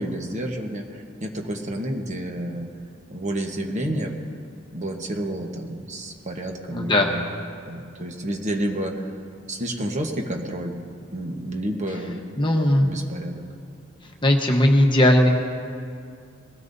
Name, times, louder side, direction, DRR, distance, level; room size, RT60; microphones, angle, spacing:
voice 1, 0.0-2.7 3.1-4.2 4.7-7.3 7.7-9.1 9.5-10.8 11.1-12.3 12.8-13.4, right 1 dB, 35° right, 2 dB, 1.2 m, -30 dB
voice 2, 6.7-7.1 12.4-12.9 14.2-15.3, left 1 dB, 25° left, 1 dB, 1.1 m, -18 dB
21.5 x 17.0 x 2.7 m, 2.3 s
head